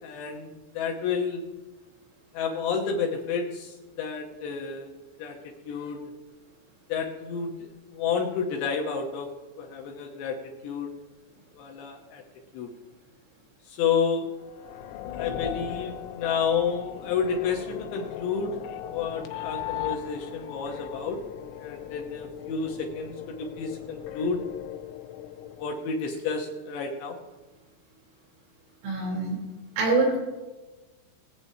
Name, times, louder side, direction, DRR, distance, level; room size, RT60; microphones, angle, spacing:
voice 1, 0.0-1.4 2.3-4.9 5.2-5.4 5.6-6.0 6.9-9.3 9.6-10.9 11.6-12.2 12.5-12.7 13.7-14.3 15.2-18.6 18.9-21.2 21.6-24.4 25.5-27.2, left 6 dB, 75° left, 1 dB, 2.8 m, -30 dB
sound 1, 14.4-25.7, left 11 dB, 90° left, 3.3 m, -38 dB
voice 2, 28.8-29.4 29.8-30.2, right 3 dB, 75° right, -2 dB, 5.5 m, -24 dB
21.5 x 8.1 x 2.7 m, 1.2 s
omnidirectional pair, 5.8 m